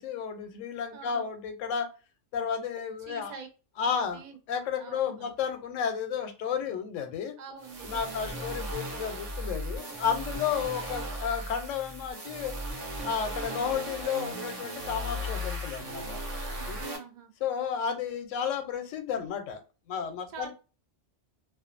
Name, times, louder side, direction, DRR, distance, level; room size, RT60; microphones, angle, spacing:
voice 1, 0.0-1.9 2.3-3.3 3.8-4.2 4.5-7.3 7.8-12.5 13.0-16.9 17.4-19.6 19.9-20.5, left 7 dB, 85° left, 7 dB, 0.9 m, -32 dB
voice 2, 0.9-1.3 3.0-3.5 3.9-4.4 4.8-5.3 7.4-8.5 16.5-17.3 20.3-20.5, right 6 dB, 65° right, 7 dB, 0.4 m, -46 dB
sound 1, 7.6-17.0, equal, 80° right, 1.1 m, -37 dB
2.5 x 2.2 x 2.4 m, 0.33 s
omnidirectional pair, 1.3 m